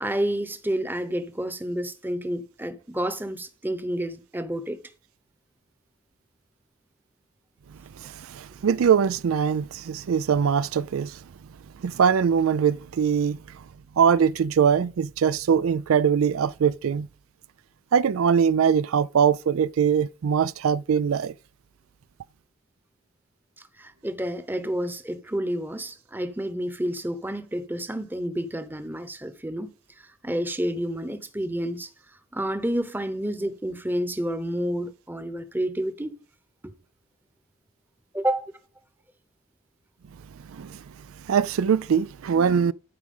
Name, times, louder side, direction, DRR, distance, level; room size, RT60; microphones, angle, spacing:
voice 1, 0.0-4.8 23.8-31.9 32.3-36.2 36.6-36.7 38.1-38.5, right 1 dB, 10° right, 0.9 m, -29 dB
voice 2, 8.0-11.2 11.8-13.4 14.0-17.1 17.9-21.3 40.5-40.8 41.3-42.7, right 7 dB, 80° right, 0.4 m, -22 dB
12.0 x 4.8 x 5.4 m
head